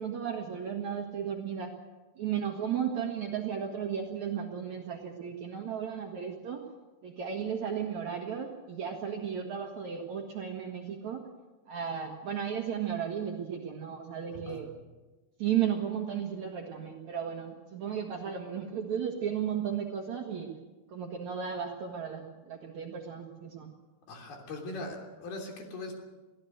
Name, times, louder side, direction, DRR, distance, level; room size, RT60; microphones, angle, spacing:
voice 1, 0.0-1.7 2.2-6.6 7.0-11.2 11.7-14.7 15.4-20.5 20.9-23.7, right 8 dB, 55° right, 2 dB, 2.2 m, -34 dB
voice 2, 14.3-14.6 24.1-25.9, left 2 dB, 65° left, 2 dB, 5.0 m, -40 dB
23.5 x 16.0 x 8.0 m, 1.2 s
omnidirectional pair, 4.9 m